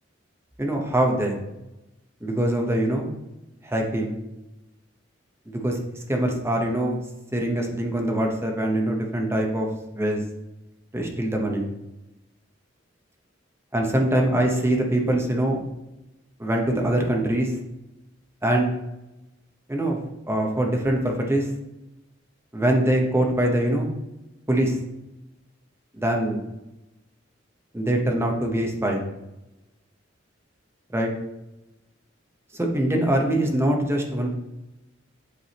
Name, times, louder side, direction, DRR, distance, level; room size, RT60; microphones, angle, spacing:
voice 1, 0.6-1.4 2.2-3.1 3.6-4.2 5.5-5.8 6.1-7.0 7.3-9.7 9.9-10.2 10.9-11.7 13.7-15.6 16.4-17.5 18.4-18.7 19.7-21.5 22.5-23.9 24.5-24.8 26.0-26.4 27.7-29.0 30.9-31.1 32.5-34.4, right 1 dB, 15° right, 1 dB, 0.9 m, -23 dB
8.2 x 4.8 x 2.9 m, 0.96 s
head